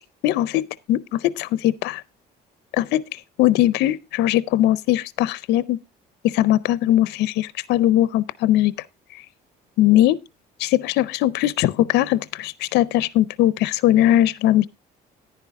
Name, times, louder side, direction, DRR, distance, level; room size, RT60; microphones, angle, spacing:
voice 1, 0.2-2.0 2.7-5.8 6.2-8.7 9.1-9.2 9.8-10.2 10.6-14.7, left 14 dB, 85° left, 0.6 m, -20 dB
10.5 x 9.8 x 3.5 m
cardioid pair, 110°, 17 cm